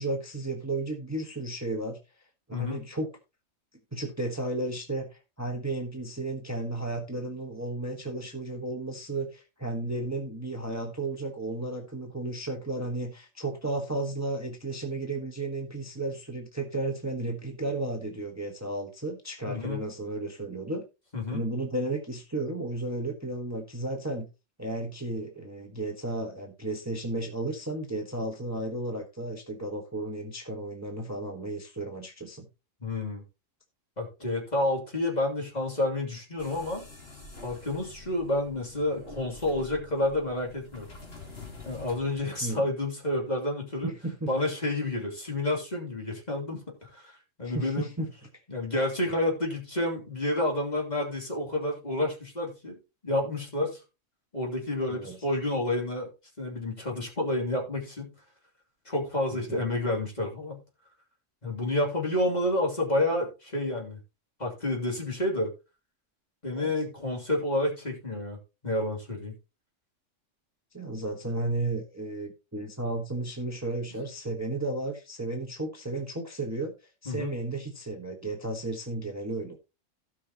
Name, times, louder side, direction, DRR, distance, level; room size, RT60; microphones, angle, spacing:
voice 1, 0.0-2.0 2.5-3.1 3.9-20.8 21.3-24.3 24.6-32.5 42.4-42.6 43.8-44.3 47.4-48.1 54.9-55.1 59.3-59.6 66.5-66.7 70.7-76.7 77.0-79.6, right 2 dB, 15° right, 1.3 m, -33 dB
voice 2, 2.5-2.9 19.5-19.8 21.1-21.4 32.8-33.2 34.0-36.8 37.4-40.9 41.6-43.9 44.3-47.1 47.4-47.9 48.5-52.8 53.0-53.8 54.3-56.1 56.4-58.1 58.8-60.6 61.4-64.0 64.4-65.5 66.4-68.4 68.6-69.3 77.0-77.3, left 1 dB, 30° left, 3.0 m, -29 dB
sound 1, 36.4-42.2, left 3 dB, 50° left, 2.8 m, -47 dB
16.5 x 5.8 x 2.9 m
omnidirectional pair, 1.4 m